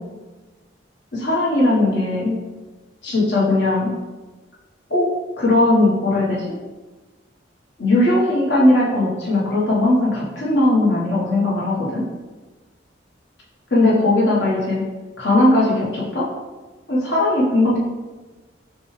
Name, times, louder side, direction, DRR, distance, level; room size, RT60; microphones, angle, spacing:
voice 1, 1.1-2.4 3.0-3.9 4.9-5.1 5.4-6.4 7.8-12.0 13.7-14.8 15.2-16.3 16.9-17.8, left 2 dB, 75° left, -5 dB, 1.3 m, -18 dB
6.3 x 2.3 x 3.2 m, 1.2 s
head